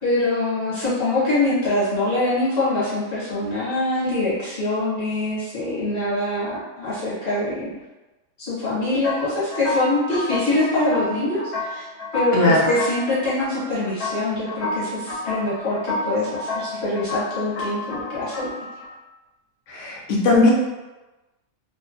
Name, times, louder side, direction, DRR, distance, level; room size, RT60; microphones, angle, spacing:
voice 1, 0.0-7.7 8.4-11.8 12.1-18.5, left 2 dB, 50° left, -10 dB, 1.1 m, -24 dB
sound 1, 9.0-18.9, left 2 dB, 85° left, 1.1 m, -30 dB
voice 2, 12.3-12.6 19.7-20.5, left 2 dB, 65° left, -3 dB, 0.8 m, -18 dB
2.7 x 2.2 x 2.5 m, 1.1 s
omnidirectional pair, 1.5 m